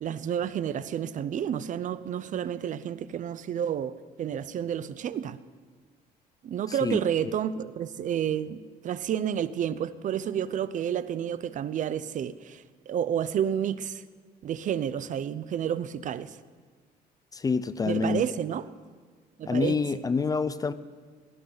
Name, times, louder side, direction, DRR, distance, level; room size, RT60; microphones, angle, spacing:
voice 1, 0.0-5.4 6.4-14.0 14.4-16.4 17.9-18.6 19.4-19.8, right 9 dB, 50° right, 0.5 m, -30 dB
voice 2, 6.7-7.3 17.3-18.3 19.5-20.7, left 4 dB, 20° left, 0.5 m, -27 dB
17.5 x 16.0 x 4.0 m
cardioid pair, 110°, 17 cm